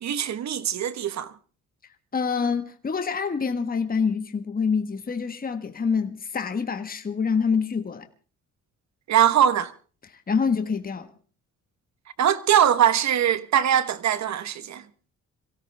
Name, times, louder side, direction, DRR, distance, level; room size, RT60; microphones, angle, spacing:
voice 1, 0.0-1.3 9.1-9.7 12.2-14.8, right 10 dB, 65° right, 1.4 m, -22 dB
voice 2, 2.1-8.1 10.1-11.1, left 5 dB, 30° left, 1.5 m, -26 dB
23.5 x 16.5 x 3.5 m
cardioid pair, 90°, 30 cm